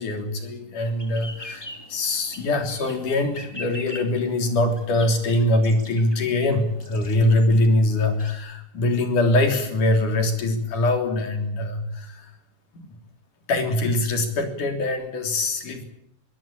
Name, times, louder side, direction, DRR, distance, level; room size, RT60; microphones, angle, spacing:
voice 1, 0.0-12.4 12.7-12.9 13.5-15.8, left 2 dB, 75° left, 6 dB, 5.0 m, -23 dB
sound 1, 0.8-8.3, left 1 dB, 10° left, 2.8 m, -43 dB
24.0 x 17.0 x 8.9 m, 0.79 s
omnidirectional pair, 3.6 m